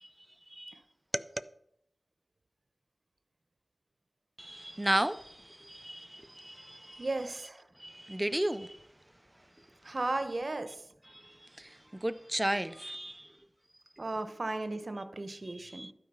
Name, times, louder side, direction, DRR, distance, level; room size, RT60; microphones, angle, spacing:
voice 1, 4.4-7.1 7.8-8.8 11.1-13.3 15.4-15.9, right 1 dB, 15° right, 0.4 m, -34 dB
voice 2, 7.0-7.6 9.8-10.8 14.0-15.9, right 2 dB, 55° right, 0.9 m, -35 dB
11.5 x 4.8 x 5.5 m
wide cardioid pair, 60°, 0 cm